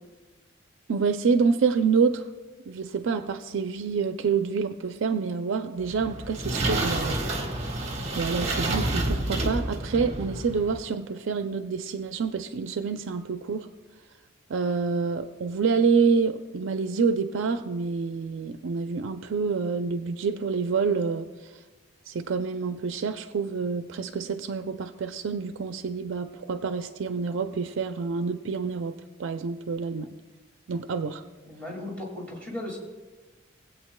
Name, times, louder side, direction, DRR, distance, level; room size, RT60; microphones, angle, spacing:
voice 1, 0.9-2.3 2.7-7.2 8.1-13.7 14.5-21.3 22.1-30.1 30.7-31.2, right 5 dB, 75° right, 0.4 m, -27 dB
sound 1, 5.8-10.8, right 2 dB, 35° right, 1.3 m, -29 dB
voice 2, 31.4-32.8, left 1 dB, 5° left, 2.1 m, -36 dB
20.0 x 8.1 x 2.2 m
head